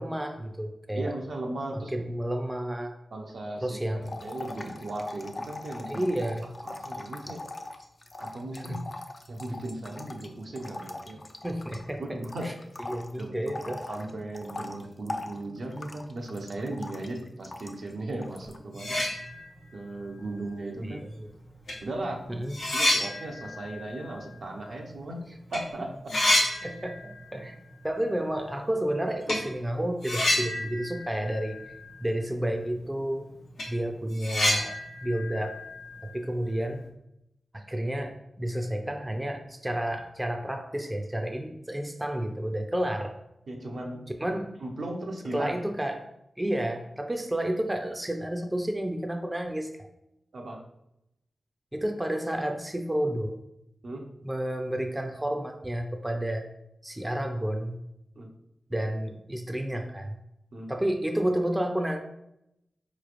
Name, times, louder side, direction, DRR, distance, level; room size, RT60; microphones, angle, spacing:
voice 1, 0.0-1.1 1.7-2.9 3.6-4.2 5.9-6.5 8.6-8.8 11.4-12.0 12.4-12.5 12.9-13.8 20.8-21.3 22.4-22.6 26.6-27.6 27.8-31.6 32.0-33.2 33.7-34.8 35.0-35.6 36.0-36.8 37.5-43.2 44.2-44.5 45.3-46.1 46.4-49.7 51.7-53.4 54.2-56.5 56.8-57.8 58.7-60.2 60.7-62.0, right 1 dB, 15° right, 4 dB, 0.5 m, -31 dB
voice 2, 1.0-1.9 3.1-6.1 6.6-7.4 8.2-8.9 9.3-11.2 12.0-12.5 13.2-19.0 19.7-21.0 21.8-22.2 22.7-25.2 25.5-26.1 43.5-44.1 44.6-45.6 50.3-50.6 53.8-54.2 58.2-58.3 60.5-60.7, right 2 dB, 70° right, 0 dB, 0.7 m, -37 dB
sound 1, 4.0-12.0 12.2-17.9 18.2-18.6, left 2 dB, 40° left, 0.4 m, -40 dB
sound 2, 18.4-18.5 18.7-19.8 20.1-20.2 21.2-21.3 21.7-25.1 25.4-25.6 25.9-27.4 27.7-27.8 29.3-29.5 30.0-32.2 32.4-32.5 33.0-33.1 33.4-36.6, left 1 dB, 85° left, 0.9 m, -30 dB
4.2 x 3.1 x 2.5 m, 0.83 s
cardioid pair, 45°, 0 cm